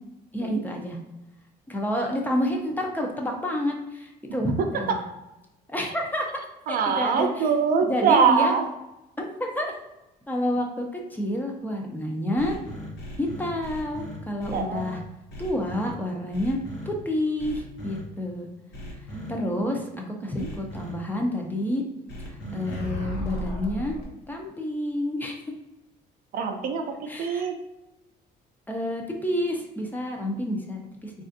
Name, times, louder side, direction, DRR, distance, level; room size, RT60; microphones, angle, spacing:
voice 1, 0.3-1.0 1.7-5.0 5.7-6.3 6.7-7.5 7.8-8.5 9.2-9.7 10.3-10.9 11.1-12.6 13.2-15.0 15.4-16.6 16.9-18.5 19.3-19.9 20.2-21.8 22.3-23.9 24.3-25.4 27.1-27.5 28.7-31.1, left 1 dB, 10° left, 1 dB, 0.5 m, -29 dB
voice 2, 4.6-5.0 6.7-8.6 14.5-14.8 19.1-19.7 20.4-20.5 22.4-22.8 26.3-27.6, right 6 dB, 60° right, 5 dB, 0.4 m, -24 dB
sound 1, 12.4-15.0 15.3-15.9 16.3-16.9 17.4-18.0 18.7-19.3 20.4-20.9 22.1-24.0, equal, 80° left, 0.9 m, -36 dB
3.3 x 2.4 x 2.6 m, 0.95 s
cardioid pair, 110°, 17 cm